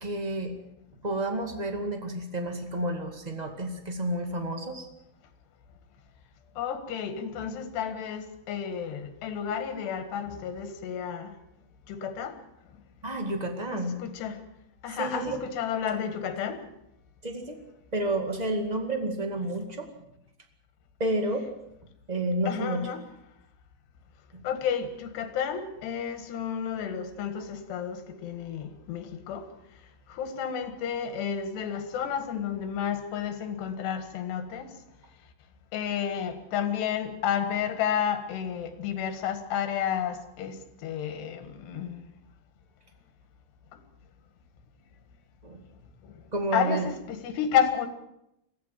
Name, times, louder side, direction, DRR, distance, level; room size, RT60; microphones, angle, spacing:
voice 1, 0.0-0.5 1.0-4.8 13.0-13.9 14.9-15.4 17.2-17.6 17.9-19.9 21.0-21.4 22.1-22.8 45.4-45.6 46.3-46.9, right 1 dB, 20° right, 4 dB, 1.0 m, -30 dB
voice 2, 6.6-11.3 11.9-12.3 13.7-14.4 14.8-16.6 22.5-23.0 24.4-29.5 30.1-34.7 35.7-42.1 46.0-46.1 46.5-47.9, left 8 dB, 85° left, 9 dB, 3.9 m, -31 dB
22.5 x 15.0 x 7.6 m, 0.83 s
omnidirectional pair, 4.7 m